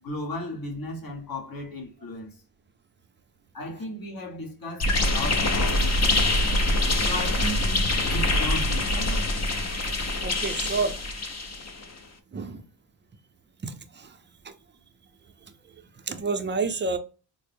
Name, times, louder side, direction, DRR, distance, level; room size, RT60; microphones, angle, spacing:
voice 1, 0.0-2.3 3.5-6.6 7.0-9.8, left 1 dB, 55° left, 1.2 m, -36 dB
sound 1, 4.8-11.8, left 1 dB, 40° left, 0.6 m, -24 dB
voice 2, 10.2-10.9 12.3-12.6 13.6-14.2 14.4-14.5 15.9-17.0, right 4 dB, 25° right, 0.5 m, -29 dB
4.0 x 2.0 x 3.3 m
wide cardioid pair, 95°, 42 cm